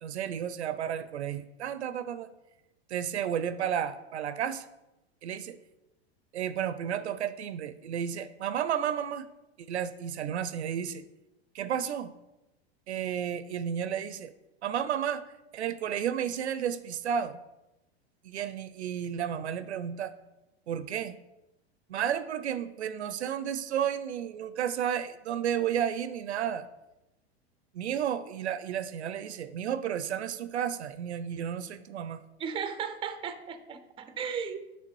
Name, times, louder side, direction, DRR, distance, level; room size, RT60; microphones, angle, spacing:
voice 1, 0.0-2.3 2.9-4.6 5.2-5.6 6.3-9.3 9.6-11.0 11.5-12.1 12.9-14.3 14.6-15.2 15.5-17.4 18.2-20.1 20.7-21.1 21.9-26.7 27.7-32.2, right 9 dB, 85° right, 12 dB, 0.5 m, -32 dB
voice 2, 32.4-34.7, right 7 dB, 15° right, 10 dB, 0.5 m, -35 dB
6.0 x 3.4 x 4.6 m, 0.95 s
hypercardioid pair, 95°, 33 cm